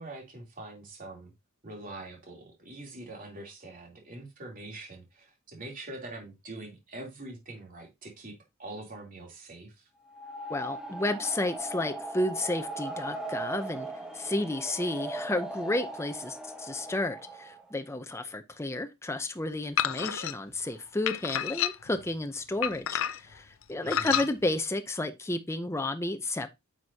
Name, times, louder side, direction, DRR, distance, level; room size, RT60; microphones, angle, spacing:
voice 1, 0.0-1.3 1.6-9.8 23.8-24.2, right 2 dB, 40° right, 3.1 m, -44 dB
sound 1, 10.0-17.7, right 1 dB, 5° right, 1.2 m, -39 dB
voice 2, 10.5-13.9 14.1-26.5, left 2 dB, 15° left, 0.6 m, -32 dB
sound 2, 19.8-20.3 21.1-22.0 22.6-23.3 23.9-24.3, left 10 dB, 75° left, 0.5 m, -29 dB
9.4 x 6.2 x 2.8 m
head